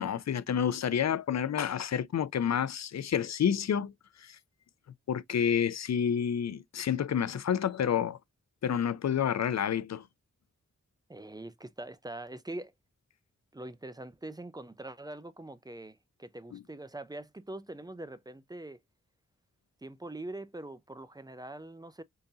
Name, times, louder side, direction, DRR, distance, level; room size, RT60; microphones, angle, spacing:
voice 1, 0.0-3.9 4.2-4.4 5.1-8.2 8.6-10.0 16.5-16.6, left 8 dB, 60° left, 0.5 m, -29 dB
voice 2, 11.1-12.7 13.5-18.8 19.8-22.0, right 2 dB, 15° right, 0.4 m, -43 dB
3.8 x 2.6 x 2.7 m
wide cardioid pair, 70°, 31 cm